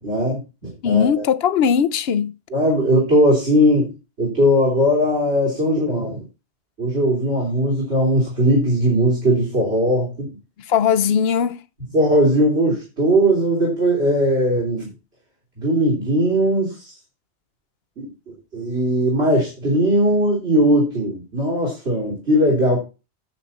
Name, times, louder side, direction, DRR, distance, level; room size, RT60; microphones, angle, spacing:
voice 1, 0.0-1.3 2.5-6.2 6.8-10.3 11.9-14.9 15.6-16.9 18.0-18.1 18.5-22.8, equal, 75° right, 3.6 m, -19 dB
voice 2, 0.8-2.3 10.7-11.6, left 7 dB, 70° left, 0.9 m, -19 dB
10.0 x 7.3 x 4.3 m
omnidirectional pair, 1.1 m